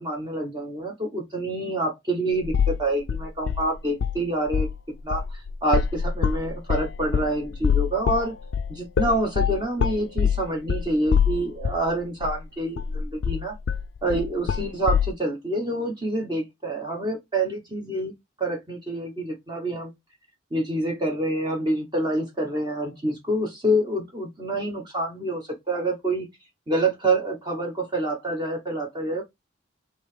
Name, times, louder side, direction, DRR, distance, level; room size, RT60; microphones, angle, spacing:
voice 1, 0.0-4.7 5.0-8.3 8.7-13.5 14.0-18.1 18.4-19.9 20.5-26.3 26.7-29.2, right 1 dB, 20° right, 1.0 m, -27 dB
sound 1, 2.4-2.8 3.1-4.2 4.5-4.8 5.1-11.9 12.2-12.3 12.8-15.1, left 7 dB, 70° left, 0.3 m, -24 dB
5.2 x 2.9 x 3.3 m
head